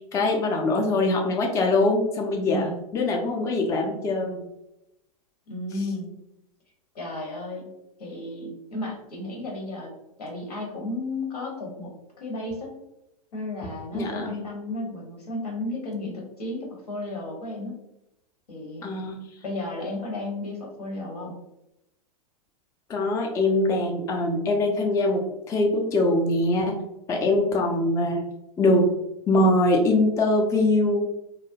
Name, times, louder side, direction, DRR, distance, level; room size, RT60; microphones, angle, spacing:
voice 1, 0.0-4.4 13.9-14.4 18.8-19.2 22.9-26.8 27.1-28.3 28.6-28.9 29.3-31.1, left 2 dB, 15° left, 0 dB, 0.4 m, -23 dB
voice 2, 2.4-2.8 5.5-6.1 6.9-7.7 8.0-9.9 10.2-11.9 12.2-12.8 13.3-17.8 18.5-18.9 19.4-21.4, left 2 dB, 80° left, 0 dB, 0.9 m, -33 dB
2.4 x 2.0 x 2.6 m, 0.86 s
hypercardioid pair, 95°, 19 cm